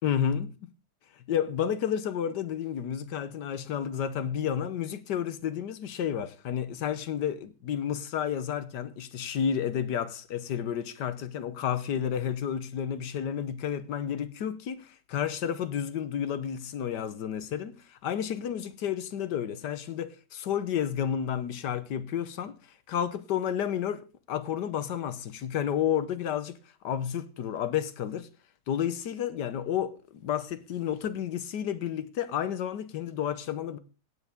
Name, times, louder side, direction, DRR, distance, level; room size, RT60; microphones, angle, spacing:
voice 1, 0.0-0.7 1.2-22.6 22.9-26.6 26.8-28.3 28.7-33.8, left 9 dB, 80° left, 1.6 m, -31 dB
16.5 x 9.5 x 3.6 m
omnidirectional pair, 1.8 m